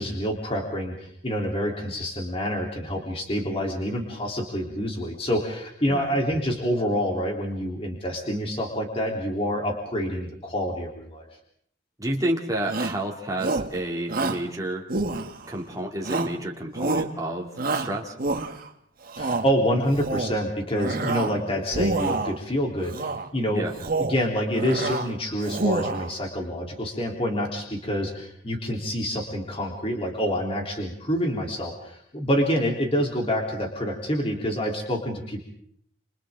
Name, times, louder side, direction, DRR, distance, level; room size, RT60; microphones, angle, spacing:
voice 1, 0.0-11.3 19.2-23.6 24.0-35.4, equal, 30° left, 0 dB, 3.6 m, -27 dB
voice 2, 12.0-14.8 15.5-18.1 21.3-21.5 23.5-23.7, right 1 dB, 20° right, -1 dB, 3.0 m, -30 dB
Shout, 12.7-13.0 13.4-13.7 14.1-14.4 14.9-15.6 16.0-16.4 16.7-17.1 17.6-18.7 19.1-19.5 19.9-20.4 20.7-21.4 21.7-22.4 22.9-23.3 23.7-24.2 24.5-25.1 25.4-26.1, right 3 dB, 55° right, 1.5 m, -27 dB
29.0 x 29.0 x 3.8 m, 0.69 s
head